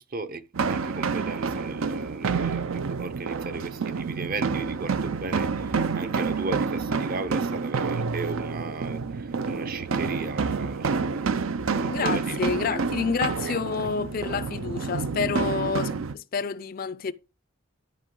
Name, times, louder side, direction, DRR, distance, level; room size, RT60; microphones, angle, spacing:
voice 1, 0.0-11.2 11.7-13.6, right 3 dB, 45° right, 0.7 m, -36 dB
sound 1, 0.5-16.1, right 5 dB, 80° right, 0.6 m, -28 dB
voice 2, 11.9-17.1, left 5 dB, 45° left, 0.4 m, -29 dB
12.5 x 5.3 x 3.8 m
head